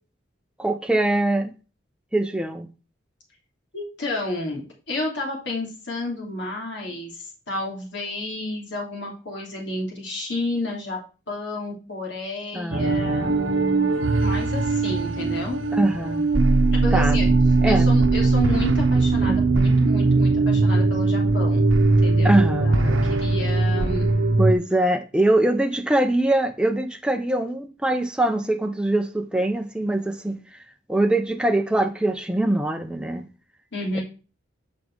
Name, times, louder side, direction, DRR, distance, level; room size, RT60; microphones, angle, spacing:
voice 1, 0.6-1.5 2.1-2.7 12.5-13.3 15.7-16.3 16.9-17.2 17.6-17.9 19.2-19.4 22.2-22.8 24.4-30.6 30.9-33.3 33.9-34.0, right 1 dB, 5° right, 0.6 m, -23 dB
voice 2, 3.7-7.2 7.5-11.0 11.3-13.9 14.2-15.6 16.7-17.3 17.6-21.7 22.0-24.1 33.7-34.0, left 2 dB, 65° left, 3.0 m, -31 dB
sound 1, 12.7-24.5, right 3 dB, 80° right, 0.8 m, -20 dB
7.0 x 5.2 x 4.7 m
head